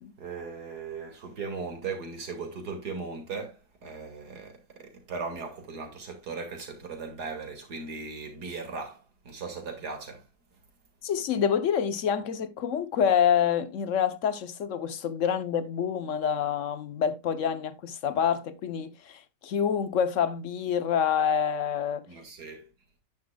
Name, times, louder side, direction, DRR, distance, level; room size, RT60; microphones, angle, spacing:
voice 1, 0.2-10.3 22.1-22.7, right 4 dB, 60° right, 2.7 m, -38 dB
voice 2, 11.0-22.1, left 8 dB, 55° left, 1.0 m, -27 dB
10.5 x 9.3 x 2.3 m
omnidirectional pair, 1.9 m